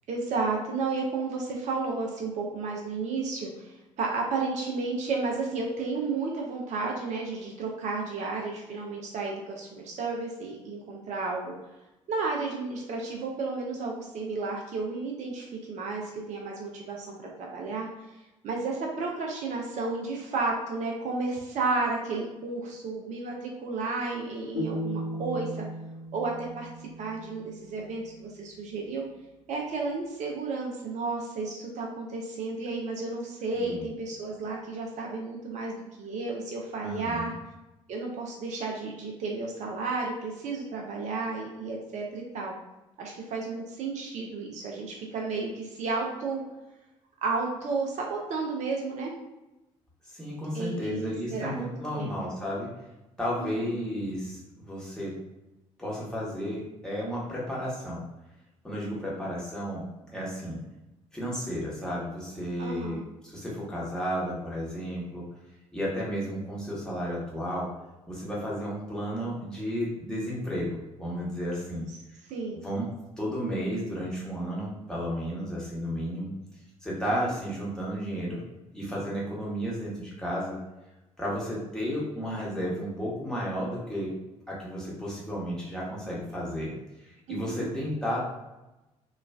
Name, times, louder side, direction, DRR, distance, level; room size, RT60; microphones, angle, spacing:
voice 1, 0.1-11.5 12.1-17.9 18.4-25.7 26.1-26.7 27.0-29.0 29.5-37.3 37.9-42.5 43.0-46.4 47.2-49.1 50.5-52.1 53.4-53.7 62.6-63.0 72.3-72.6 77.1-77.3 87.3-87.7, right 3 dB, 45° right, -1 dB, 0.6 m, -32 dB
sound 1, 24.5-27.7, equal, 75° left, 1.2 m, -36 dB
voice 2, 33.5-33.8 36.8-37.3 50.1-52.7 53.2-55.2 55.8-58.0 58.6-59.8 60.1-60.6 61.1-65.2 65.7-67.7 68.1-71.8 72.5-72.9 73.2-76.3 76.8-78.4 78.7-80.6 81.2-84.1 84.5-86.7 87.0-88.3, equal, 5° left, -6 dB, 1.2 m, -33 dB
3.0 x 2.4 x 2.3 m, 0.98 s
figure-of-eight pair, 50°, 17 cm